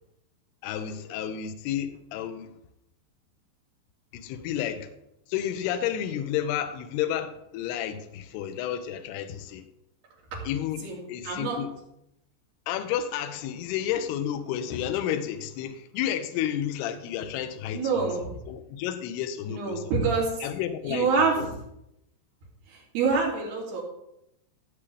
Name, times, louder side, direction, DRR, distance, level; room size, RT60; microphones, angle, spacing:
voice 1, 0.6-2.5 4.1-4.9 5.3-9.7 10.4-11.7 12.7-19.9 20.4-21.1 21.4-21.5, left 10 dB, 75° left, 9 dB, 2.6 m, -31 dB
voice 2, 11.2-11.6 17.7-18.3 19.5-20.4 20.9-21.5 22.7-23.8, right 4 dB, 65° right, -3 dB, 4.5 m, -26 dB
16.0 x 7.4 x 3.3 m, 0.83 s
omnidirectional pair, 5.2 m